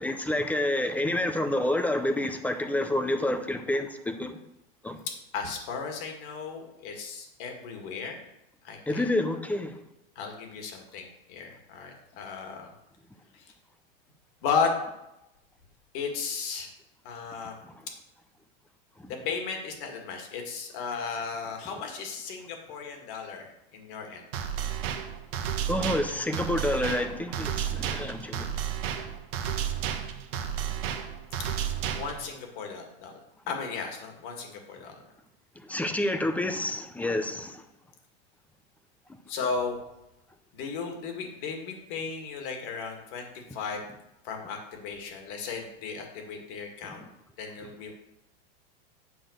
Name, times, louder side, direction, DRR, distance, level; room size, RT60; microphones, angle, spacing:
voice 1, 0.0-4.4 4.8-5.0 8.9-9.7 19.0-19.1 25.7-28.5 29.0-29.1 35.6-37.6 46.8-46.9, left 1 dB, 5° left, 7 dB, 0.6 m, -28 dB
voice 2, 5.3-8.2 8.6-9.1 10.2-12.7 13.3-13.4 14.4-14.7 15.9-16.7 17.0-17.6 19.1-24.2 31.9-33.2 33.5-35.0 39.3-39.8 40.5-43.8 44.2-47.1 47.4-47.9, left 5 dB, 60° left, 3 dB, 2.1 m, -35 dB
sound 1, 24.3-32.3, right 9 dB, 70° right, 1.2 m, -32 dB
9.1 x 4.0 x 6.5 m, 0.88 s
supercardioid pair, 130°, 31 cm